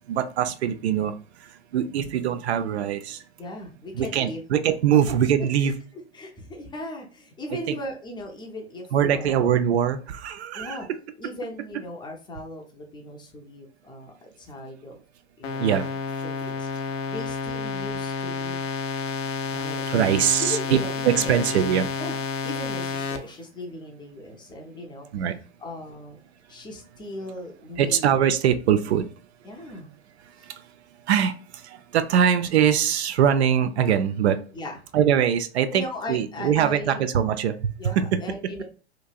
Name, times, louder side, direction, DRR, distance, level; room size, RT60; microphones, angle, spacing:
voice 1, 0.1-1.1 1.4-3.2 3.9-5.7 7.7-7.8 8.9-11.0 15.6-15.9 19.9-20.8 21.0-21.9 25.1-25.4 27.8-29.1 30.4-30.6 31.1-34.4 34.9-38.2, right 9 dB, 70° right, 9 dB, 0.5 m, -22 dB
voice 2, 3.4-4.4 5.6-5.7 6.1-9.5 10.5-10.9 11.2-15.0 15.4-15.6 16.2-18.5 19.5-19.8 20.4-21.4 21.7-22.2 22.4-25.2 25.6-26.2 26.5-28.0 29.4-29.9 30.4-30.5 34.5-34.8 35.7-37.0 37.8-38.6, left 1 dB, 15° left, 1 dB, 0.5 m, -38 dB
sound 1, 15.4-23.2, left 5 dB, 65° left, 0.7 m, -30 dB
3.0 x 2.5 x 2.3 m, 0.39 s
hypercardioid pair, 105°, 34 cm